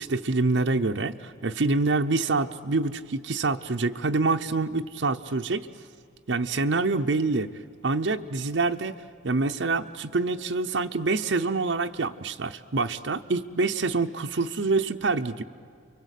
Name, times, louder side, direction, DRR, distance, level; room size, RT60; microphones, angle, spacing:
voice 1, 0.0-5.7 6.3-7.5 7.8-15.4, right 3 dB, 75° right, 6 dB, 0.8 m, -26 dB
29.5 x 24.0 x 8.3 m, 2.2 s
head